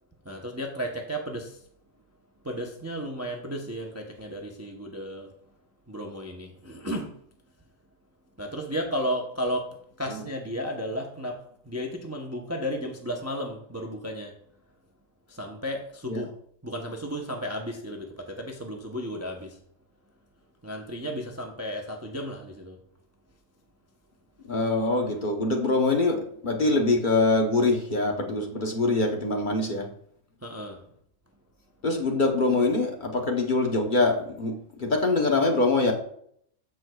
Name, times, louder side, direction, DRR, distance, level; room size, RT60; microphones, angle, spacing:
voice 1, 0.2-1.6 2.4-5.3 5.9-7.2 8.4-14.4 15.3-16.3 16.6-19.6 20.6-22.8 30.4-30.8, equal, 15° right, 0.6 m, -34 dB
voice 2, 24.5-29.9 31.8-35.9, left 2 dB, 40° left, 1.0 m, -24 dB
14.0 x 4.7 x 2.3 m
omnidirectional pair, 1.4 m